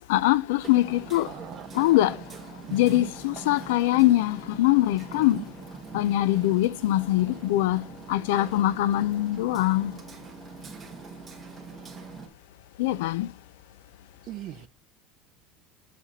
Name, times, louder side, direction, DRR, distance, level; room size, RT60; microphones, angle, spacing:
voice 1, 0.1-1.3 1.7-2.2 2.7-5.4 5.9-7.8 8.1-9.9 12.8-13.3, left 15 dB, 85° left, 0.4 m, -23 dB
Hammer, 0.6-12.3, right 4 dB, 20° right, 1.3 m, -43 dB
voice 2, 1.3-2.1 2.6-3.1 5.1-5.5 14.2-14.7, right 13 dB, 45° right, 0.5 m, -40 dB
6.8 x 4.9 x 4.1 m
supercardioid pair, 135°, 0 cm